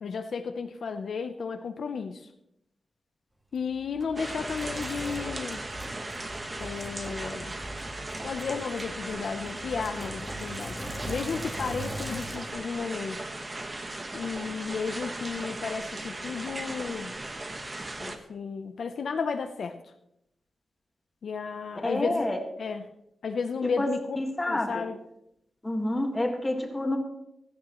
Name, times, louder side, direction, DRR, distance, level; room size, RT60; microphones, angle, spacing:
voice 1, 0.0-2.3 3.5-5.6 6.6-7.6 8.2-13.2 14.1-17.2 18.0-19.8 21.2-22.3 22.6-22.9 23.2-24.2 24.4-25.0, left 5 dB, 70° left, 7 dB, 0.7 m, -33 dB
Sink (filling or washing), 3.5-12.4, equal, 10° right, 1.5 m, -41 dB
sound 1, 4.2-18.2, right 2 dB, 25° right, 1.1 m, -37 dB
voice 2, 21.8-22.4 23.8-23.9 24.2-24.9 25.6-27.0, left 1 dB, 15° left, 3 dB, 1.8 m, -28 dB
16.0 x 14.0 x 3.1 m, 0.81 s
wide cardioid pair, 135°, 0 cm